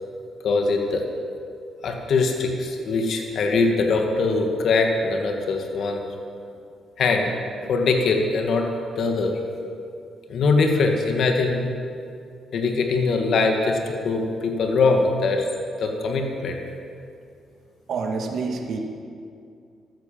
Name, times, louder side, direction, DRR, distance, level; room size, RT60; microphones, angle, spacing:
voice 1, 0.4-1.0 1.8-6.0 7.0-7.3 7.7-8.7 9.0-9.4 10.3-11.7 12.5-15.4 15.8-16.6, left 3 dB, 65° left, 3 dB, 2.2 m, -22 dB
voice 2, 17.9-18.8, right 4 dB, 65° right, 1 dB, 2.2 m, -27 dB
14.5 x 13.0 x 7.5 m, 2.4 s
cardioid pair, 90°, 0 cm